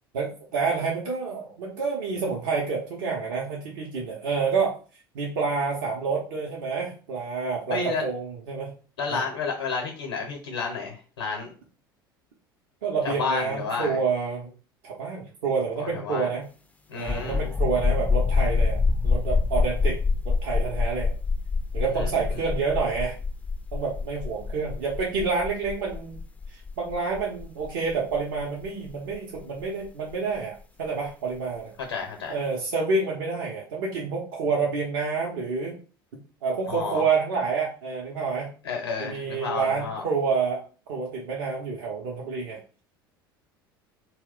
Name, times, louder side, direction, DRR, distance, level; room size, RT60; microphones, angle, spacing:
voice 1, 0.1-4.7 5.1-8.7 9.1-9.2 12.8-14.5 14.8-16.5 16.9-20.0 20.2-21.1 21.7-23.2 23.7-26.2 26.5-31.7 32.3-35.8 36.4-38.5 39.0-40.6 40.9-42.6, right 5 dB, 60° right, -2 dB, 0.6 m, -28 dB
voice 2, 7.7-8.0 9.0-11.5 13.0-14.0 15.8-16.3 16.9-17.4 21.9-22.1 31.9-32.4 36.7-37.0 38.6-40.0, left 5 dB, 75° left, 1 dB, 0.7 m, -31 dB
sound 1, 17.0-30.4, left 4 dB, 10° left, 0.3 m, -26 dB
2.3 x 2.1 x 3.7 m, 0.38 s
figure-of-eight pair, 70°, 12 cm